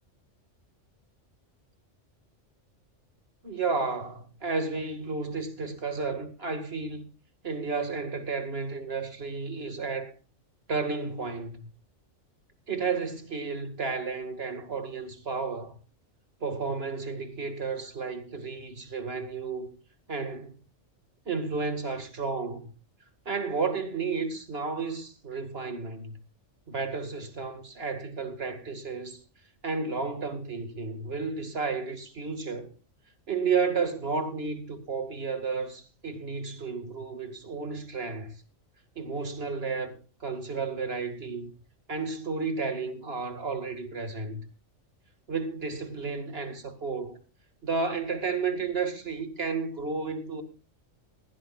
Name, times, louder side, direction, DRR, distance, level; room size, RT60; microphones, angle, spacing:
voice 1, 3.4-7.1 7.4-10.1 10.7-11.7 12.7-15.7 16.4-19.7 20.1-20.6 21.3-22.7 23.3-26.2 26.7-29.2 29.6-32.7 33.3-38.3 39.0-41.5 41.9-44.4 45.3-47.2 47.6-50.4, right 4 dB, 55° right, 2.4 m, -32 dB
20.0 x 16.5 x 2.4 m
omnidirectional pair, 1.3 m